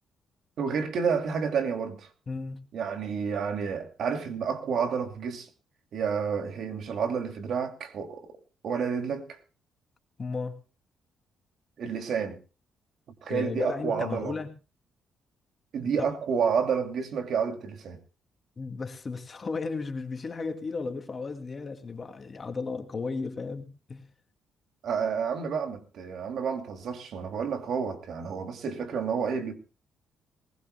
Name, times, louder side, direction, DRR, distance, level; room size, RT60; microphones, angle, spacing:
voice 1, 0.6-2.1 2.7-5.5 5.9-8.4 8.6-9.4 11.8-12.4 13.2-14.3 15.7-18.0 24.8-29.6, right 6 dB, 65° right, 2.6 m, -30 dB
voice 2, 2.3-2.6 10.2-10.6 13.3-14.5 16.0-16.1 18.6-24.0, left 4 dB, 35° left, 2.5 m, -34 dB
20.5 x 19.5 x 2.2 m
cardioid pair, 90°, 0 cm